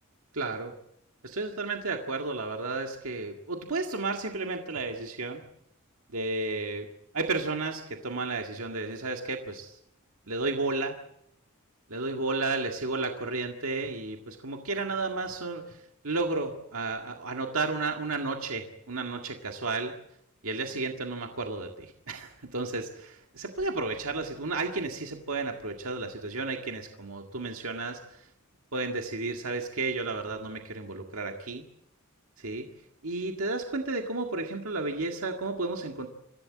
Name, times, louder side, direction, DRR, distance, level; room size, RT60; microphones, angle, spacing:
voice 1, 0.3-0.7 1.2-5.4 6.1-6.9 7.1-9.8 10.3-11.0 11.9-19.9 20.4-28.3 28.7-31.6 32.4-32.7 33.0-36.1, right 3 dB, 70° right, 3 dB, 1.9 m, -32 dB
27.0 x 15.5 x 8.4 m, 0.75 s
head